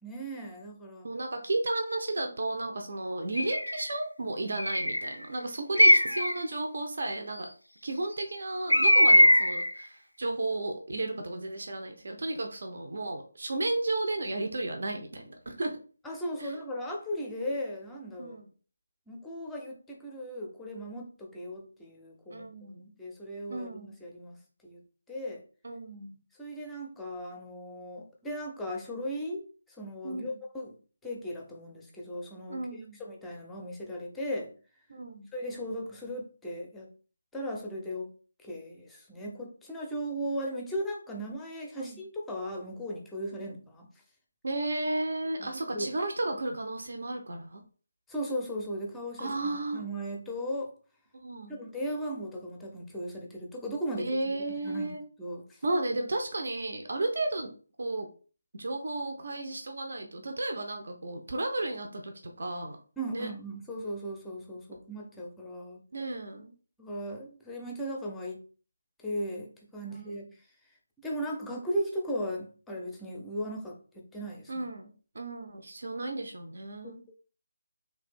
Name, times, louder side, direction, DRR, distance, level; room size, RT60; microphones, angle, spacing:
voice 1, 0.0-1.1 16.0-18.4 19.1-22.7 23.0-24.4 24.6-24.8 25.1-25.4 26.4-34.5 35.3-36.9 37.3-38.1 38.4-43.9 45.4-45.9 48.1-50.7 51.5-55.6 63.0-65.8 66.8-68.4 69.0-70.5 71.0-74.6 76.8-77.1, equal, 5° left, 0 dB, 0.6 m, -37 dB
voice 2, 1.0-7.5 7.8-15.8 16.4-16.5 18.2-18.5 22.3-22.9 23.5-23.9 25.6-26.2 30.0-30.4 32.5-33.0 34.9-35.3 41.8-42.0 44.4-47.6 49.2-49.8 51.1-51.6 54.0-55.0 55.6-57.5 57.8-58.1 58.5-62.8 63.1-63.3 65.9-66.5 69.9-70.2 74.5-77.0, right 2 dB, 50° right, 4 dB, 0.7 m, -33 dB
Bird, 3.4-3.8 4.6-5.1 5.8-6.4 8.7-9.7, equal, 85° left, 0.3 m, -21 dB
3.4 x 2.6 x 4.2 m, 0.39 s
figure-of-eight pair, 155°, 0 cm